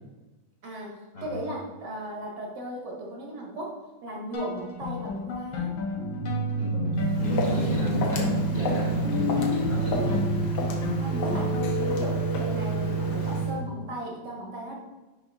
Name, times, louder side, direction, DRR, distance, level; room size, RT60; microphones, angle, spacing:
voice 1, 0.6-5.8 11.0-14.8, right 1 dB, 65° right, -1 dB, 1.9 m, -37 dB
sound 1, 4.3-12.0, left 4 dB, 85° left, 1.8 m, -34 dB
sound 2, 6.0-13.5, right 3 dB, 15° right, 1.1 m, -28 dB
voice 2, 6.6-10.3, equal, 40° left, -5 dB, 1.2 m, -32 dB
Walk footsteps, 7.0-13.6, left 2 dB, 65° left, 1.4 m, -34 dB
5.4 x 5.4 x 3.5 m, 1.1 s
omnidirectional pair, 2.1 m